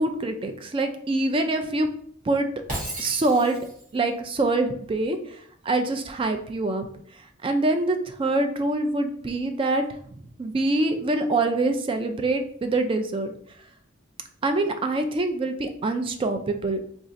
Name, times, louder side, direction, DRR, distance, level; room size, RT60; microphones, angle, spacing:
voice 1, 0.0-1.9 2.2-2.5 3.0-3.6 3.9-6.8 7.4-13.3 14.4-16.8, right 2 dB, 25° right, 6 dB, 0.3 m, -25 dB
Shatter, 2.7-3.9, right 1 dB, 45° right, 1.1 m, -34 dB
4.0 x 2.4 x 2.5 m, 0.63 s
head